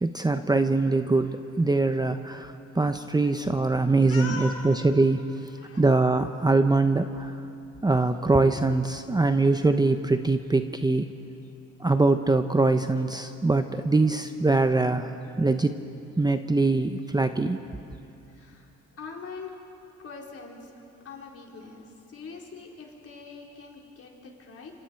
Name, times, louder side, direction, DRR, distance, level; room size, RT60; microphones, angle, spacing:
voice 1, 0.0-1.3 1.6-5.2 5.8-7.3 7.8-11.0 11.8-15.7 16.2-17.6, right 3 dB, 15° right, 8 dB, 0.8 m, -23 dB
voice 2, 4.1-4.7 5.6-5.8 18.3-19.6 20.0-20.7 21.0-24.8, left 4 dB, 50° left, -1 dB, 4.3 m, -42 dB
28.0 x 26.5 x 4.6 m, 2.6 s
cardioid pair, 90°, 30 cm